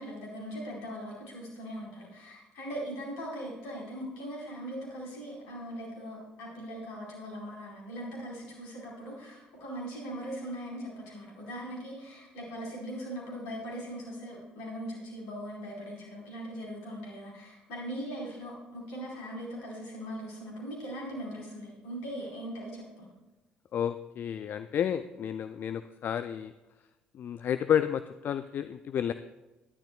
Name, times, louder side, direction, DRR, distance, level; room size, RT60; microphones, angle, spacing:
voice 1, 0.0-23.1, equal, 70° left, -3 dB, 4.6 m, -40 dB
voice 2, 23.7-26.5 27.1-29.1, left 9 dB, 50° left, 12 dB, 0.5 m, -31 dB
20.0 x 11.5 x 2.4 m, 1.1 s
figure-of-eight pair, 50°, 4 cm